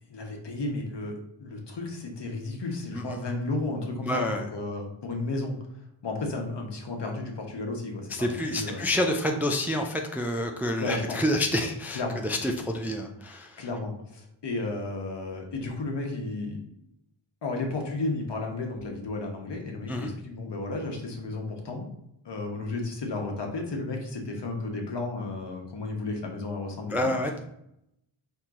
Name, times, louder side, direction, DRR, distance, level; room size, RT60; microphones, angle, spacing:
voice 1, 0.1-5.6 6.0-8.9 10.8-11.2 11.9-12.2 13.6-16.6 17.4-21.9 22.2-27.1, left 2 dB, 60° left, 2 dB, 1.2 m, -33 dB
voice 2, 4.0-4.5 8.1-13.7 19.9-20.1 26.9-27.5, left 1 dB, 5° right, 3 dB, 0.4 m, -28 dB
4.4 x 2.9 x 3.7 m, 0.80 s
cardioid pair, 70°, 48 cm